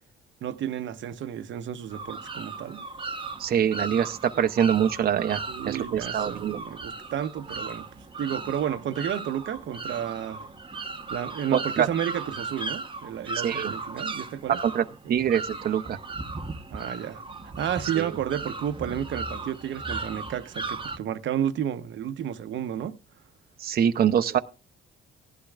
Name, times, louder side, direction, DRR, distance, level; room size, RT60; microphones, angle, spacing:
voice 1, 0.4-2.8 5.5-10.5 11.1-14.6 15.0-15.2 16.7-17.2 17.6-23.0 24.3-24.4, right 10 dB, 70° right, 0.9 m, -32 dB
sound 1, 1.9-21.0, right 3 dB, 25° right, 1.0 m, -36 dB
voice 2, 3.4-6.6 11.5-11.9 13.4-13.7 14.6-16.0 18.0-18.1 23.6-24.4, right 9 dB, 50° right, 0.7 m, -24 dB
17.0 x 12.0 x 2.4 m
cardioid pair, 90°, 20 cm